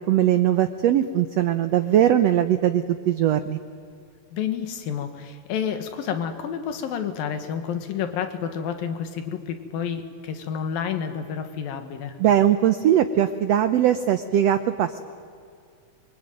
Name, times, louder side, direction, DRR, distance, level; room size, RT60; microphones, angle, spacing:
voice 1, 0.1-3.6 12.2-15.0, right 11 dB, 85° right, 10 dB, 1.4 m, -20 dB
voice 2, 4.3-12.2, left 8 dB, 90° left, 8 dB, 3.3 m, -30 dB
25.0 x 23.5 x 9.2 m, 2.3 s
omnidirectional pair, 4.0 m